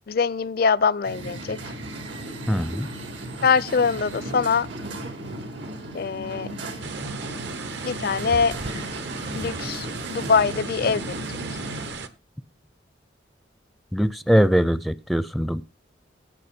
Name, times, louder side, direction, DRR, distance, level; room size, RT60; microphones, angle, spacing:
voice 1, 0.1-1.6 3.4-4.7 5.9-6.5 7.8-8.6 9.3-11.1 11.5-11.6, left 5 dB, 55° left, 0.4 m, -23 dB
sound 1, 1.0-11.9, right 1 dB, 85° right, 3.2 m, -35 dB
voice 2, 2.5-2.9 13.9-15.6, equal, ahead, 0.4 m, -21 dB
sound 2, 6.8-12.1, right 3 dB, 70° right, 1.0 m, -35 dB
17.0 x 5.8 x 4.3 m
head